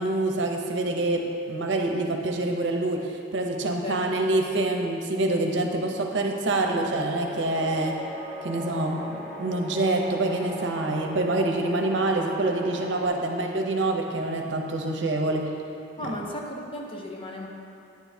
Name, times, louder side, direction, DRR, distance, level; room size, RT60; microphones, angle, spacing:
voice 1, 0.0-8.0 8.4-15.5, right 2 dB, 70° right, 2 dB, 0.7 m, -26 dB
voice 2, 3.8-4.4 12.1-12.2 12.8-13.3 16.0-17.5, left 1 dB, 30° left, -1 dB, 0.8 m, -36 dB
sound 1, 6.5-13.1, equal, 5° left, 1.4 m, -39 dB
9.4 x 8.2 x 2.8 m, 2.8 s
head